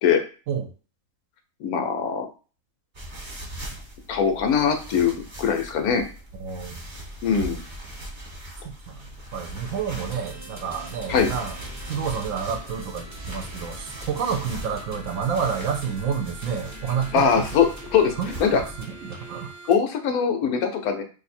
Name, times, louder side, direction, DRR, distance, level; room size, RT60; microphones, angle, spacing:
voice 1, 1.6-2.3 4.1-6.1 7.2-7.6 11.1-11.3 17.1-18.1 18.4-18.6 19.7-21.0, left 6 dB, 80° left, 6 dB, 1.1 m, -22 dB
sound 1, 2.9-18.8, right 1 dB, 35° right, 1.1 m, -39 dB
voice 2, 6.4-6.8 8.9-11.6 11.9-17.4 18.2-18.6 19.0-19.5, right 7 dB, 70° right, 6 dB, 0.9 m, -29 dB
sound 2, 10.1-19.7, right 1 dB, 20° right, 0.5 m, -43 dB
2.6 x 2.6 x 4.2 m, 0.36 s
omnidirectional pair, 1.6 m